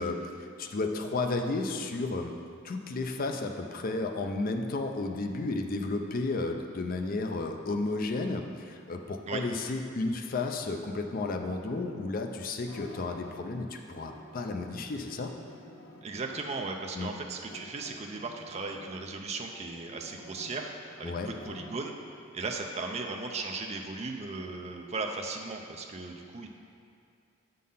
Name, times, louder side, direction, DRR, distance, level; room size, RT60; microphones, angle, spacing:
voice 1, 0.0-2.4 2.6-15.3 17.0-17.1 21.0-21.3, left 3 dB, 45° left, 4 dB, 0.5 m, -33 dB
sound 1, 10.8-13.7 14.0-16.7 17.5-19.1 19.5-22.0, left 1 dB, 80° left, 0.8 m, -51 dB
voice 2, 16.0-20.7 21.0-21.9 22.3-26.5, right 3 dB, 35° right, 2 dB, 0.5 m, -37 dB
7.4 x 3.9 x 5.5 m, 2.3 s
head